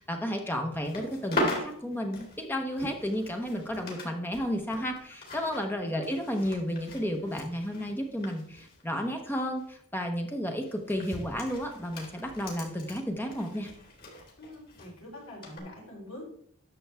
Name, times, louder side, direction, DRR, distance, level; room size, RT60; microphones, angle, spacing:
voice 1, 0.0-13.7, equal, 10° left, 3 dB, 0.9 m, -32 dB
sound 1, 0.7-4.1 4.3-9.3 9.6-9.8 10.6-14.9 15.4-15.6, left 1 dB, 45° left, 2.7 m, -39 dB
voice 2, 14.4-16.2, left 1 dB, 60° left, -3 dB, 4.0 m, -45 dB
11.0 x 6.9 x 3.5 m, 0.65 s
head